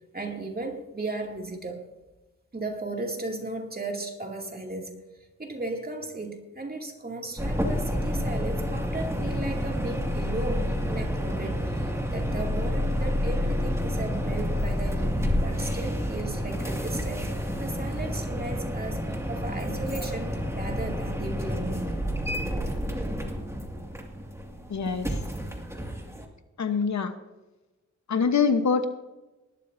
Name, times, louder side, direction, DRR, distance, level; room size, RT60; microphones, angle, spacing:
voice 1, 0.1-1.9 2.5-5.0 5.4-21.9, right 2 dB, 30° right, 1 dB, 2.4 m, -36 dB
sound 1, 7.4-26.2, equal, 10° right, 2.1 m, -29 dB
voice 2, 24.7-25.1 26.6-27.1 28.1-28.9, left 5 dB, 70° left, 9 dB, 1.1 m, -24 dB
19.0 x 12.0 x 2.7 m, 1.1 s
wide cardioid pair, 75°, 29 cm